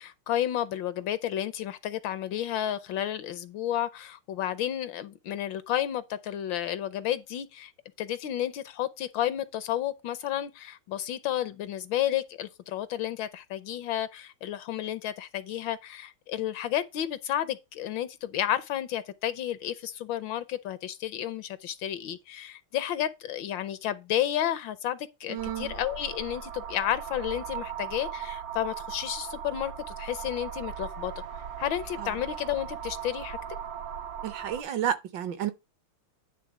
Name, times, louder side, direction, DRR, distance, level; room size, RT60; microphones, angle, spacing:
voice 1, 0.0-7.7 8.0-31.1 31.6-33.4, left 11 dB, 75° left, 1.2 m, -31 dB
voice 2, 25.3-25.7 32.0-32.1 34.2-35.5, right 10 dB, 70° right, 1.3 m, -31 dB
sound 1, 25.4-34.6, right 8 dB, 85° right, 1.8 m, -38 dB
9.6 x 3.5 x 5.8 m
omnidirectional pair, 2.3 m